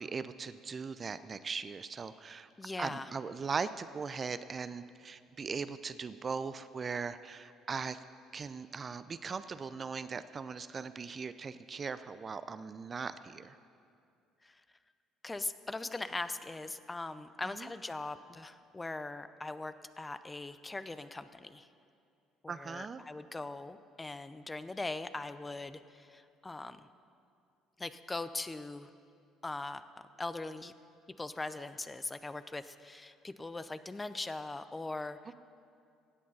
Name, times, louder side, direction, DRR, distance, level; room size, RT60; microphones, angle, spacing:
voice 1, 0.0-2.5 2.8-8.0 8.3-13.6 17.5-17.7 22.5-23.0, right 5 dB, 40° right, 13 dB, 0.5 m, -39 dB
voice 2, 2.6-3.1 14.4-14.6 15.2-21.7 22.4-26.9 27.8-28.9 29.4-30.7 31.2-35.3, left 2 dB, 20° left, 12 dB, 0.6 m, -41 dB
17.0 x 8.5 x 5.5 m, 2.4 s
hypercardioid pair, 60°, 0 cm